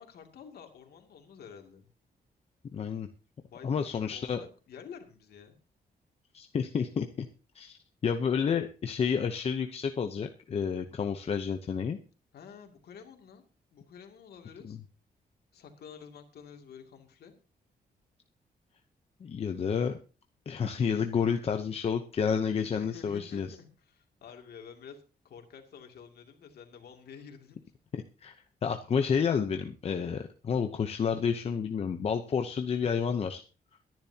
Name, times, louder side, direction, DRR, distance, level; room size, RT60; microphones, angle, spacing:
voice 1, 0.0-1.9 3.4-5.6 12.3-13.5 13.7-14.8 15.5-17.4 22.7-27.7, left 7 dB, 80° left, 4 dB, 2.6 m, -50 dB
voice 2, 2.7-3.1 3.6-4.4 6.3-7.3 7.5-7.8 8.0-12.0 14.6-14.8 19.2-20.0 20.5-23.5 28.2-28.3 28.6-33.4, left 6 dB, 40° left, 6 dB, 0.8 m, -30 dB
22.5 x 10.5 x 2.9 m, 0.34 s
wide cardioid pair, 180°, 16 cm